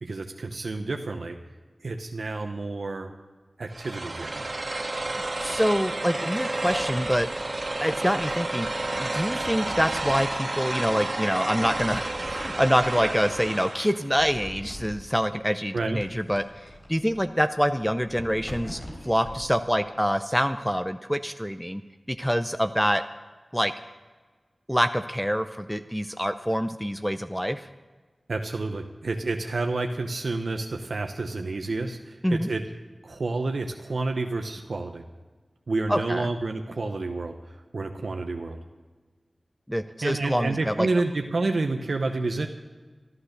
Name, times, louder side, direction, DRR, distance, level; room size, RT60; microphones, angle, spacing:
voice 1, 0.0-1.4 1.8-3.1 3.6-4.4 15.7-16.0 28.3-32.6 33.0-35.0 35.7-37.3 37.7-38.6 40.0-42.5, right 3 dB, 80° right, 4 dB, 0.8 m, -29 dB
sound 1, 3.7-14.0, right 2 dB, 55° right, 1.5 m, -31 dB
sound 2, 5.0-6.0 6.5-7.9 8.3-10.5 10.8-11.3 11.6-13.6 14.1-15.2 16.0-20.5, left 1 dB, 60° left, 3.7 m, -45 dB
voice 2, 5.4-7.3 7.8-21.8 22.1-23.0 23.5-23.7 24.7-27.7 32.2-32.5 35.9-36.3 39.7-40.9, equal, ahead, 9 dB, 0.6 m, -26 dB
13.5 x 11.5 x 6.6 m, 1.4 s
cardioid pair, 40°, 0 cm